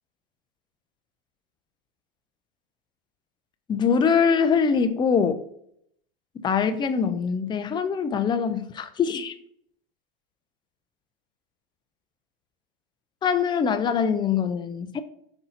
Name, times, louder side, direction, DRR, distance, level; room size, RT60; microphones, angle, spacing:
voice 1, 3.7-5.4 6.4-9.3 13.2-15.0, left 6 dB, 15° left, 0.5 m, -23 dB
5.4 x 4.3 x 4.0 m
hypercardioid pair, 115°, 30 cm